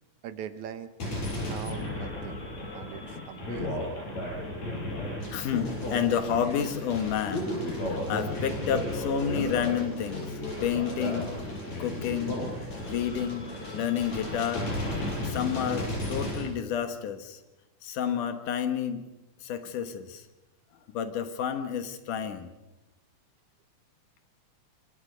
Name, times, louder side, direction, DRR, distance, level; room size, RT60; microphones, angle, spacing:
voice 1, 0.2-0.9 1.4-2.4 2.7-4.0, right 9 dB, 75° right, 11 dB, 2.4 m, -42 dB
sound 1, 1.0-16.4, left 1 dB, 60° left, 8.5 m, -34 dB
voice 2, 5.3-11.4 11.8-12.4 12.8-14.7 15.2-17.4 17.8-19.1 19.4-20.3 20.9-22.5, left 8 dB, 85° left, 8 dB, 3.0 m, -30 dB
26.5 x 26.5 x 5.2 m, 1.0 s
omnidirectional pair, 3.5 m